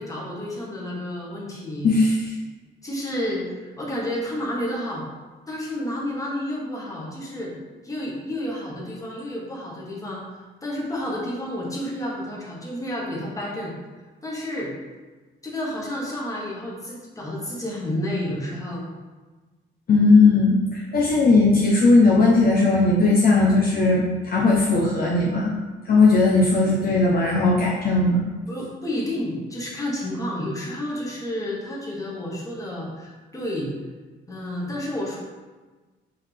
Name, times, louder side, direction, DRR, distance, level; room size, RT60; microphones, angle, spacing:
voice 1, 0.0-1.9 2.8-5.0 5.5-7.5 7.8-13.7 14.2-14.7 15.4-18.8 28.5-33.7 34.3-35.2, left 1 dB, 15° left, -4 dB, 1.4 m, -30 dB
voice 2, 1.8-2.3 19.9-25.5 25.8-28.3, left 3 dB, 50° left, -3 dB, 0.7 m, -18 dB
4.3 x 3.7 x 3.4 m, 1.3 s
cardioid pair, 90°, 20 cm